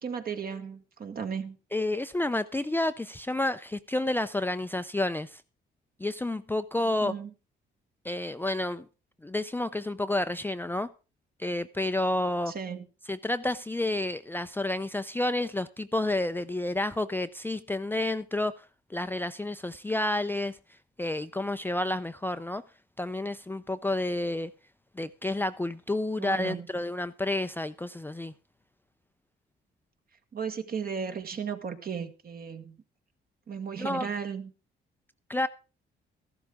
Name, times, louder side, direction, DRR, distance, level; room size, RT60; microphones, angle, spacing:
voice 1, 0.0-1.6 6.8-7.3 12.5-12.9 26.2-26.7 30.3-32.8 33.5-34.5, right 6 dB, 50° right, 1.6 m, -35 dB
voice 2, 1.7-5.4 6.0-7.1 8.0-8.9 9.2-10.9 11.4-12.5 13.1-18.5 18.9-20.6 21.0-22.6 23.0-24.5 25.0-28.3 33.8-34.1 35.3-35.5, left 2 dB, 10° left, 0.5 m, -30 dB
14.0 x 12.0 x 3.6 m
cardioid pair, 90°, 20 cm